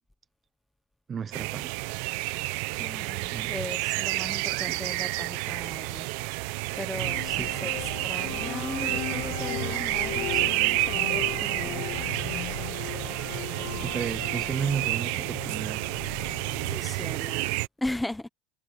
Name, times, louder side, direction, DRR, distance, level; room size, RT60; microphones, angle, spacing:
voice 1, 1.1-1.8 3.3-3.5 4.7-4.8 7.4-8.0 13.5-15.8, right 7 dB, 20° right, 0.6 m, -34 dB
sound 1, 1.3-17.7, right 22 dB, 60° right, 0.8 m, -30 dB
voice 2, 2.8-11.9 16.6-18.3, left 1 dB, 5° left, 1.0 m, -38 dB
sound 2, 6.9-16.8, left 20 dB, 50° left, 0.6 m, -37 dB
supercardioid pair, 150°, 0 cm